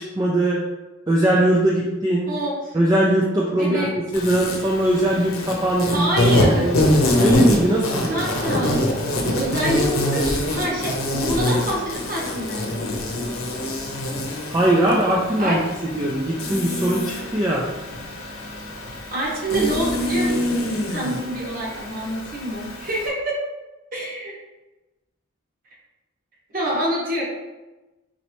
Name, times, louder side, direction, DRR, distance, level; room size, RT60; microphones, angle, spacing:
voice 1, 0.2-0.6 1.1-2.3 2.7-6.2 6.4-6.9 7.2-8.3 14.5-15.6 15.9-17.7, right 1 dB, 20° right, -4 dB, 0.3 m, -20 dB
voice 2, 2.3-2.8 3.6-4.0 5.9-6.7 8.0-8.8 9.3-12.9 15.4-15.6 18.9-23.4 23.9-24.3 26.5-27.2, right 1 dB, 40° right, -4 dB, 1.0 m, -26 dB
Insect, 4.1-23.1, left 1 dB, 85° left, 0.8 m, -25 dB
4.0 x 3.2 x 3.0 m, 1.1 s
head